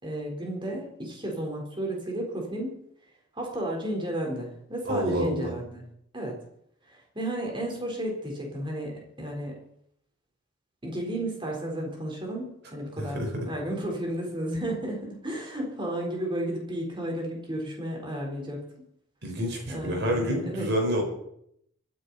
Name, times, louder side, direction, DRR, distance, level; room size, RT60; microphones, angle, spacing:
voice 1, 0.0-2.7 3.3-5.8 6.1-6.4 6.8-9.5 10.8-18.6 19.7-20.7, right 1 dB, 25° right, 0 dB, 4.2 m, -33 dB
voice 2, 4.9-5.5 13.0-13.3 19.2-21.0, equal, 60° right, 1 dB, 5.0 m, -28 dB
24.5 x 10.5 x 4.2 m, 0.73 s
head